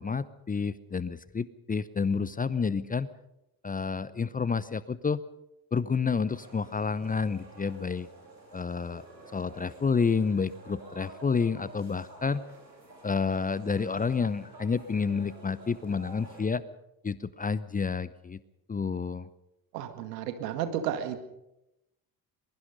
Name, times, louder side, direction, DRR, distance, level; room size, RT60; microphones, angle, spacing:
voice 1, 0.0-3.1 3.6-5.2 5.7-8.1 8.5-9.0 9.3-12.4 13.0-16.6 17.0-18.4 18.7-19.3, left 5 dB, 15° left, 18 dB, 0.8 m, -29 dB
sound 1, 6.3-16.4, right 2 dB, 90° right, 4.0 m, -50 dB
voice 2, 19.7-21.2, right 10 dB, 70° right, 9 dB, 2.1 m, -32 dB
22.5 x 22.0 x 5.4 m, 0.88 s
figure-of-eight pair, 55°, 50 cm